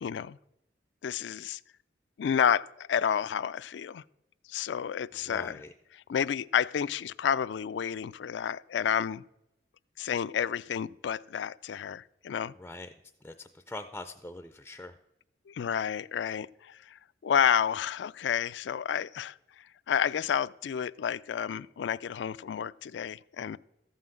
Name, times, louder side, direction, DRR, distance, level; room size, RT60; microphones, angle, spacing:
voice 1, 0.0-0.4 1.0-1.6 2.2-4.0 4.5-5.6 5.9-9.2 10.0-12.5 15.5-23.6, left 8 dB, 80° left, 17 dB, 0.3 m, -30 dB
voice 2, 5.3-5.7 12.6-12.9 13.2-15.0, left 2 dB, 10° left, 8 dB, 0.4 m, -43 dB
14.0 x 5.7 x 7.6 m, 0.86 s
head